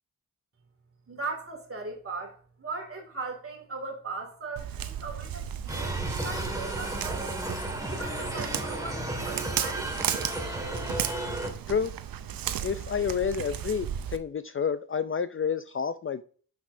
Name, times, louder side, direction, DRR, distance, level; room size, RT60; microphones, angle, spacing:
voice 1, 1.1-7.4 7.8-9.9, right 3 dB, 40° right, 2.3 m, -38 dB
Walk footsteps, 4.6-14.2, right 10 dB, 85° right, 0.6 m, -35 dB
sound 1, 5.7-11.5, right 1 dB, 10° right, 1.7 m, -33 dB
voice 2, 12.6-16.2, left 6 dB, 40° left, 0.4 m, -29 dB
6.4 x 5.9 x 2.6 m
cardioid pair, 65°, 34 cm